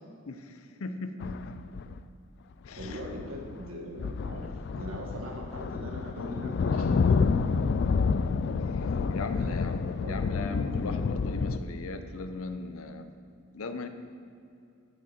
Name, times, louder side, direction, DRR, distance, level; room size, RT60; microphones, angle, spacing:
voice 1, 0.3-1.5 2.6-3.0 8.7-13.1 13.5-13.9, left 3 dB, 80° left, 9 dB, 0.7 m, -38 dB
sound 1, 1.2-2.0 2.7-3.7 4.0-11.6, left 5 dB, 55° left, 0.3 m, -29 dB
voice 2, 2.8-4.5 4.7-7.2 9.3-9.7 10.0-10.1, equal, 75° right, 0 dB, 1.5 m, -41 dB
10.0 x 7.5 x 4.4 m, 2.6 s
head